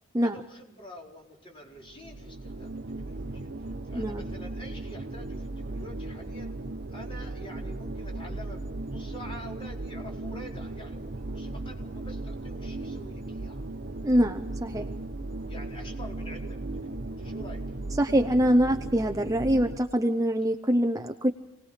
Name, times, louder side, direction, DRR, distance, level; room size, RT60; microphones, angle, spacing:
voice 1, 0.2-2.8 3.0-6.5 6.9-13.8 15.5-16.6 16.9-17.8, equal, 25° left, -1 dB, 4.6 m, -47 dB
sound 1, 1.8-19.8, right 2 dB, 45° right, 0.9 m, -37 dB
voice 2, 14.0-14.8 18.0-21.3, equal, 15° right, 6 dB, 0.7 m, -24 dB
28.0 x 19.5 x 5.0 m, 0.86 s
head